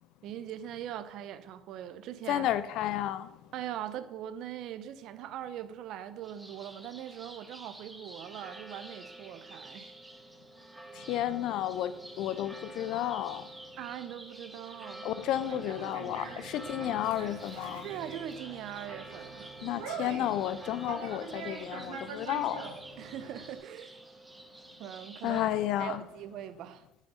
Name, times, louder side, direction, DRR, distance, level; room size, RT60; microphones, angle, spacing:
voice 1, 0.2-2.5 3.5-9.9 13.8-15.1 17.8-19.5 23.0-24.0 24.8-25.4 25.8-26.8, right 11 dB, 65° right, 0.7 m, -41 dB
voice 2, 2.3-3.3 10.9-13.5 15.0-17.9 19.6-22.6 25.2-26.0, left 12 dB, 70° left, 0.5 m, -32 dB
sound 1, 6.2-25.5, right 2 dB, 10° right, 1.2 m, -48 dB
Conversation, 15.2-23.6, right 4 dB, 85° right, 1.4 m, -44 dB
7.6 x 5.1 x 5.5 m
hypercardioid pair, 65°, 0 cm